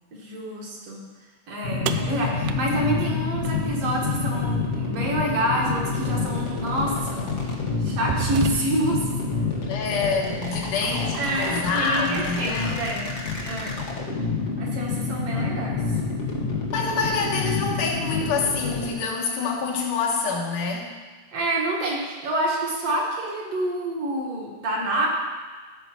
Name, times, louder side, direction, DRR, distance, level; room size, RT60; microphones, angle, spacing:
voice 1, 0.1-1.0 1.5-7.3 7.8-9.0 10.4-10.7 11.1-13.1 13.4-13.8 14.6-15.8 21.3-25.1, right 1 dB, 55° right, -3 dB, 2.6 m, -27 dB
sound 1, 1.6-18.9, left 4 dB, 55° left, 0.7 m, -28 dB
sound 2, 1.9-4.0 5.9-6.0 6.8-7.0 7.5-9.0, right 12 dB, 80° right, 1.9 m, -32 dB
voice 2, 9.7-12.7 16.7-21.0, left 4 dB, 80° left, -1 dB, 2.9 m, -26 dB
14.0 x 4.9 x 6.1 m, 1.4 s
omnidirectional pair, 3.5 m